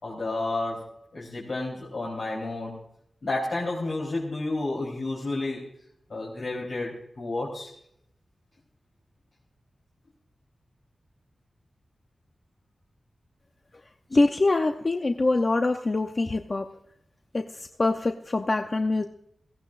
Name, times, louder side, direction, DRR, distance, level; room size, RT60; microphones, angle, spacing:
voice 1, 0.0-2.8 3.2-5.7 6.1-7.7, left 2 dB, 65° left, -4 dB, 3.6 m, -31 dB
voice 2, 14.1-16.7 17.3-19.0, left 2 dB, 35° left, 5 dB, 0.7 m, -24 dB
18.0 x 16.0 x 2.5 m, 0.71 s
wide cardioid pair, 125°, 0 cm